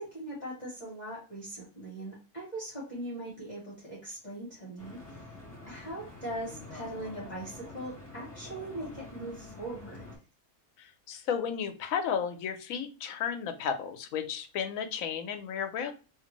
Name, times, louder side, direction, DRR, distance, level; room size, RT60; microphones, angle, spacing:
voice 1, 0.0-5.4 5.7-10.1, right 1 dB, 35° left, -5 dB, 1.0 m, -40 dB
Stream / Boat Water vehicle, 4.8-10.2, left 2 dB, 15° left, 1.3 m, -47 dB
voice 2, 11.1-15.9, left 7 dB, 75° left, 7 dB, 1.0 m, -33 dB
2.7 x 2.5 x 2.9 m, 0.35 s
omnidirectional pair, 1.5 m